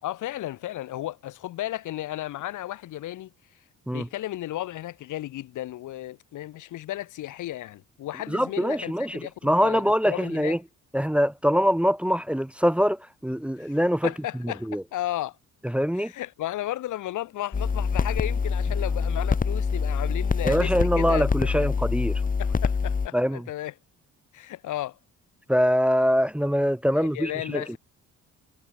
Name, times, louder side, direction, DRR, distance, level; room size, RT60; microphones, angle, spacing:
voice 1, 0.0-3.3 3.9-10.6 13.6-13.8 14.0-15.4 15.9-21.8 22.4-23.7 24.3-25.0 26.9-27.8, left 14 dB, 80° left, 2.0 m, -34 dB
voice 2, 8.3-10.6 10.9-14.1 14.7-14.8 15.7-16.1 20.4-22.2 23.1-23.4 25.5-27.8, equal, 5° right, 1.2 m, -23 dB
sound 1, 17.5-23.1, left 5 dB, 25° left, 1.3 m, -25 dB
cardioid pair, 90°, 30 cm